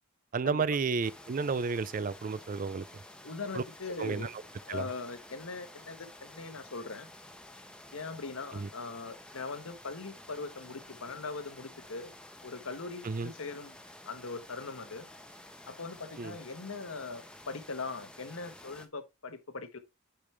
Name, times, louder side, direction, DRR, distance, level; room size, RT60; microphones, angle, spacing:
voice 1, 0.3-2.8 3.5-3.6 4.0-4.3 4.7-4.9 8.5-8.7 13.0-13.3 16.2-16.4, right 4 dB, 40° right, 0.4 m, -32 dB
sound 1, 1.0-18.9, left 1 dB, 5° left, 0.9 m, -51 dB
voice 2, 3.2-4.3 4.6-7.1 7.9-12.1 12.4-13.8 14.0-15.1 15.7-19.8, left 4 dB, 80° left, 1.2 m, -41 dB
8.8 x 5.0 x 3.2 m
head